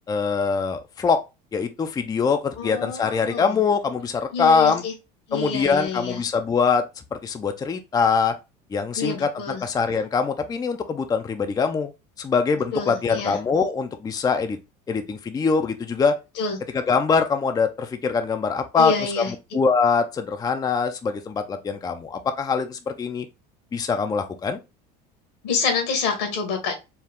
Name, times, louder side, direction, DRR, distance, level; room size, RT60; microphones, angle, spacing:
voice 1, 0.1-1.2 1.5-4.8 5.3-6.8 7.1-8.3 8.7-11.9 12.2-14.6 14.9-16.1 16.7-23.3 23.7-24.6, left 5 dB, 20° left, 0.5 m, -23 dB
voice 2, 2.6-3.5 4.3-4.9 5.3-6.2 9.0-9.6 12.7-13.3 16.4-16.6 18.8-19.6 25.4-26.7, left 5 dB, 80° left, 1.9 m, -27 dB
4.6 x 2.3 x 3.6 m
supercardioid pair, 100°, 21 cm